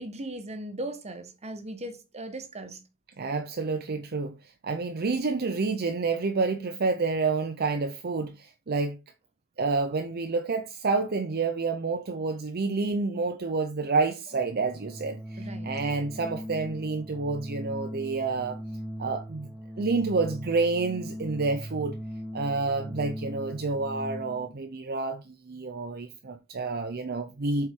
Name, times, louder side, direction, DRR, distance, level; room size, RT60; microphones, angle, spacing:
voice 1, 0.0-2.8 15.4-15.7, right 1 dB, 30° right, 1.3 m, -38 dB
voice 2, 3.2-9.0 9.6-18.6 19.0-19.5 19.8-22.0 22.3-27.7, right 3 dB, 50° right, 0.7 m, -29 dB
Organ, 14.3-24.6, equal, 5° right, 0.7 m, -39 dB
7.9 x 4.4 x 3.7 m
head